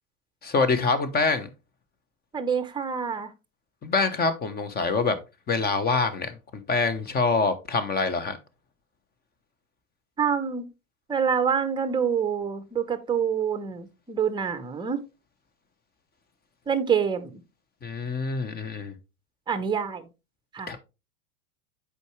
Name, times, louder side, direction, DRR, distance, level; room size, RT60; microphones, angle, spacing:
voice 1, 0.4-1.5 3.8-5.2 5.5-6.4 6.7-8.4 17.8-18.9 20.7-20.8, left 4 dB, 20° left, 1.0 m, -25 dB
voice 2, 2.3-3.3 10.2-10.7 11.1-15.0 16.7-17.4 19.5-20.1 20.5-20.8, right 7 dB, 10° right, 0.8 m, -26 dB
8.0 x 4.9 x 3.2 m
hypercardioid pair, 110°, 42 cm